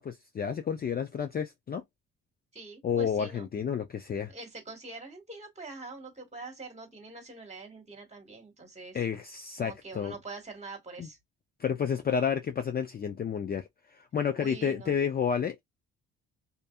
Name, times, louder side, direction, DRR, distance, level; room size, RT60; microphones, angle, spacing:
voice 1, 0.0-1.8 2.8-4.3 8.9-10.1 11.0-11.1 11.6-13.7 14.1-15.6, left 7 dB, 30° left, 0.4 m, -30 dB
voice 2, 2.5-3.5 4.3-9.0 9.6-11.2 14.4-14.9, right 3 dB, 20° right, 1.4 m, -44 dB
2.6 x 2.4 x 2.2 m
cardioid pair, 90°, 30 cm